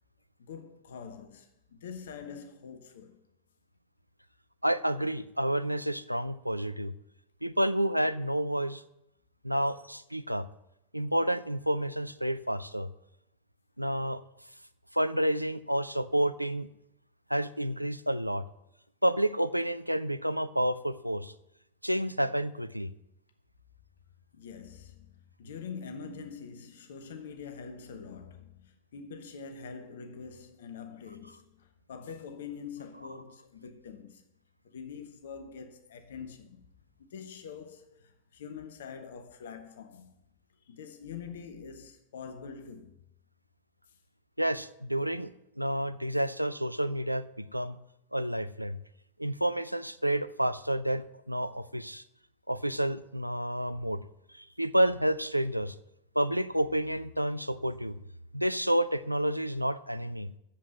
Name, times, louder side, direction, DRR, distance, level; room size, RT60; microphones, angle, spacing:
voice 1, 0.4-3.2 24.3-34.2 34.6-36.7 37.0-40.2 40.6-43.0 43.9-44.0, left 6 dB, 60° left, 1.0 m, -45 dB
voice 2, 4.6-6.9 7.4-8.8 9.4-10.5 10.9-12.9 13.8-14.2 14.9-16.7 17.3-18.4 19.0-21.3 21.8-22.9 44.4-45.3 45.6-47.8 48.1-48.8 49.2-52.0 52.5-54.0 54.3-55.7 56.2-58.0 58.3-60.3, right 1 dB, 90° right, 0.4 m, -29 dB
8.6 x 7.4 x 8.0 m
figure-of-eight pair, 90°, 0 cm